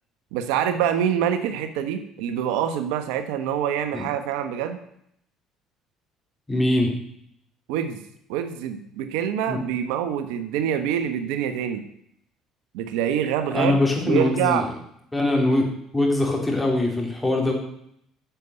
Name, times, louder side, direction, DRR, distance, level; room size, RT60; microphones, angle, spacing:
voice 1, 0.3-4.8 7.7-8.0 8.3-11.8 12.7-13.8 14.0-14.7, right 9 dB, 80° right, 9 dB, 1.3 m, -25 dB
voice 2, 6.5-6.9 9.5-9.6 13.5-14.7 15.1-15.7 15.9-17.5, left 2 dB, 15° left, 1 dB, 4.2 m, -22 dB
10.5 x 7.2 x 8.2 m, 0.71 s
supercardioid pair, 85°, 0 cm